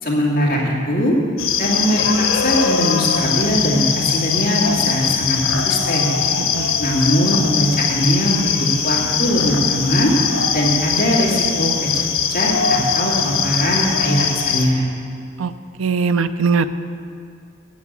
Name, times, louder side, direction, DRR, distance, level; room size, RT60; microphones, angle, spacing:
voice 1, 0.0-1.2 1.6-6.1 6.8-10.1 10.5-12.0 12.3-14.9, equal, 45° left, -4 dB, 2.5 m, -20 dB
sound 1, 1.4-14.7, left 6 dB, 85° left, 1.2 m, -21 dB
voice 2, 6.4-6.8 15.4-15.5 15.8-16.7, right 5 dB, 75° right, 12 dB, 0.5 m, -20 dB
8.6 x 8.4 x 8.4 m, 2.3 s
head